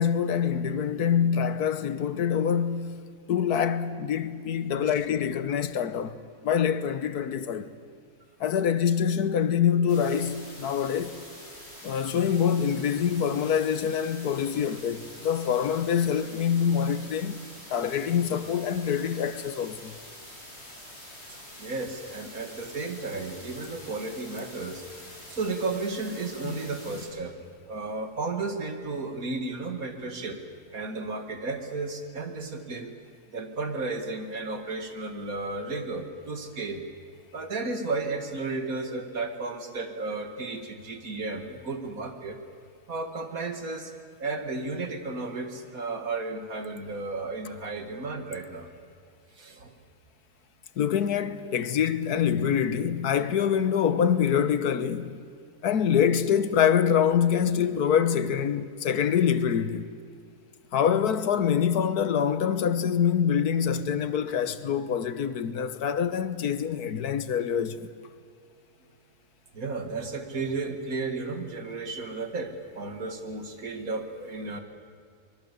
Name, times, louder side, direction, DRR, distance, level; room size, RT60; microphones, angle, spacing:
voice 1, 0.0-6.2 6.4-7.7 8.4-11.2 11.8-17.4 17.7-19.9 26.4-26.5 50.8-55.2 55.6-59.9 60.7-67.9, left 8 dB, 75° left, 1.5 m, -25 dB
sound 1, 9.9-27.1, left 1 dB, 40° left, 7.6 m, -46 dB
voice 2, 21.3-24.8 25.3-27.4 27.7-30.4 30.7-32.9 33.3-36.8 37.3-42.4 42.9-43.9 44.2-48.7 49.4-49.7 69.5-74.6, right 3 dB, 60° right, 2.4 m, -33 dB
24.0 x 22.0 x 8.3 m
omnidirectional pair, 1.7 m